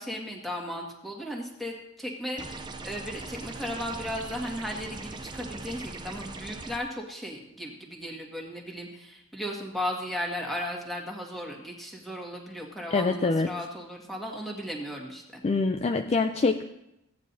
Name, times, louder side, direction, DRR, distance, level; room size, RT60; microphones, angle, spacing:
voice 1, 0.0-15.4, equal, ahead, -1 dB, 1.7 m, -36 dB
sound 1, 2.4-6.8, right 3 dB, 20° right, 0.6 m, -40 dB
voice 2, 12.9-13.5 15.4-16.6, left 3 dB, 30° left, 6 dB, 0.3 m, -25 dB
16.0 x 9.6 x 2.7 m, 0.86 s
head